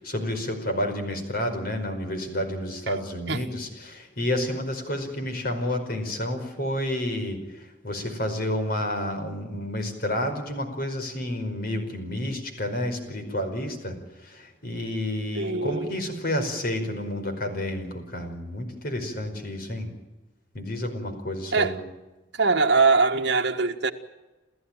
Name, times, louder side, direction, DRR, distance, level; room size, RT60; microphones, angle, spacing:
voice 1, 0.0-19.9 20.5-21.8, left 1 dB, 50° left, 5.0 m, -30 dB
voice 2, 15.3-15.9 21.5-21.7 22.4-23.9, right 4 dB, 60° right, 1.6 m, -22 dB
29.5 x 14.0 x 9.0 m
head